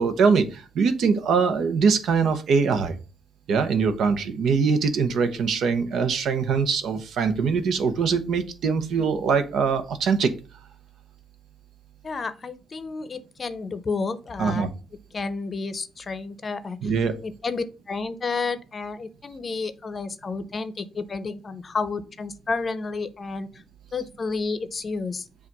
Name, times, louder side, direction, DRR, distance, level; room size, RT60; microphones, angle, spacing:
voice 1, 0.0-3.0 3.5-10.3 14.4-14.7 16.8-17.1, right 5 dB, 70° right, 9 dB, 0.8 m, -22 dB
voice 2, 12.0-14.7 15.1-16.9 17.2-23.6 23.9-25.2, left 4 dB, 35° left, 12 dB, 0.7 m, -31 dB
7.2 x 2.5 x 5.3 m, 0.34 s
cardioid pair, 90°, 0 cm